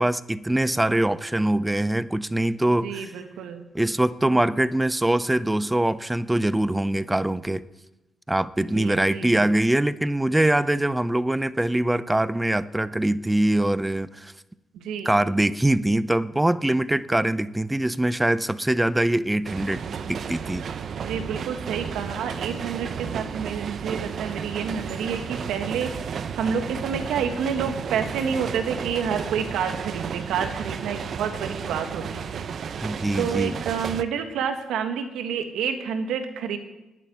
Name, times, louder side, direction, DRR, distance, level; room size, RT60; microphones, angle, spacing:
voice 1, 0.0-3.1 3.7-7.6 8.3-14.3 15.0-19.8 20.1-20.7 32.8-33.6, right 1 dB, 10° right, 16 dB, 0.6 m, -23 dB
voice 2, 2.6-3.6 8.6-9.5 14.7-15.2 21.0-32.5 33.1-36.6, right 7 dB, 85° right, 7 dB, 1.7 m, -29 dB
sound 1, 19.4-34.0, right 7 dB, 55° right, 0.8 m, -33 dB
11.0 x 9.7 x 9.4 m, 1.0 s
cardioid pair, 90°, 0 cm